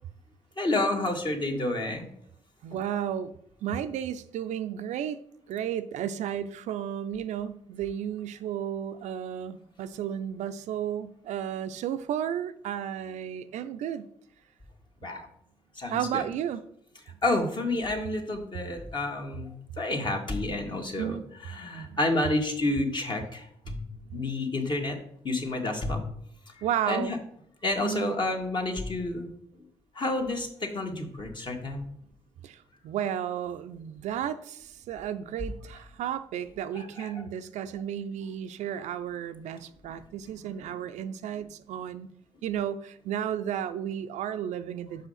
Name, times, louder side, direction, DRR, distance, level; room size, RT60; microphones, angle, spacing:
voice 1, 0.6-2.1 15.0-15.3 15.8-16.2 17.2-23.8 24.1-25.0 25.2-26.0 26.9-27.2 27.6-29.3 30.0-31.8 36.8-37.2, left 2 dB, 35° left, 2 dB, 1.8 m, -30 dB
voice 2, 2.6-3.3 3.6-5.2 5.5-14.1 15.9-16.6 21.0-21.2 21.9-22.0 26.6-27.2 27.8-28.2 32.4-32.6 32.8-42.1 42.4-45.1, right 9 dB, 60° right, 11 dB, 0.5 m, -33 dB
5.6 x 5.5 x 5.7 m, 0.70 s
hypercardioid pair, 45°, 13 cm